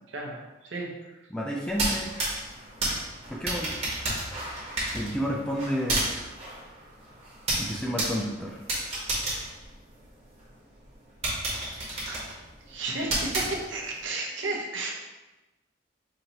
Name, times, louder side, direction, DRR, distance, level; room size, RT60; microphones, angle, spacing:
voice 1, 0.1-1.2 12.1-12.2 12.7-14.9, right 2 dB, 70° right, 0 dB, 0.7 m, -33 dB
voice 2, 1.3-2.1 3.3-3.7 4.9-6.3 7.6-8.6 11.9-12.0, equal, 5° left, -2 dB, 0.3 m, -31 dB
sound 1, 1.7-10.4 10.8-10.9 11.2-14.0, right 1 dB, 30° right, 1.0 m, -32 dB
4.6 x 2.7 x 2.9 m, 1.1 s
head